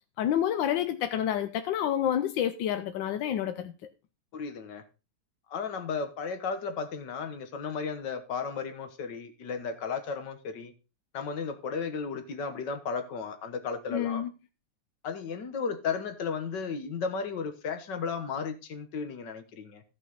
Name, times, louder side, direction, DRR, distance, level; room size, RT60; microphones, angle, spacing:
voice 1, 0.2-3.7 13.9-14.3, left 10 dB, 90° left, 1.4 m, -28 dB
voice 2, 4.3-4.8 5.5-10.7 11.1-14.3 15.0-19.8, left 5 dB, 70° left, 1.8 m, -34 dB
15.5 x 5.7 x 4.0 m
omnidirectional pair, 2.0 m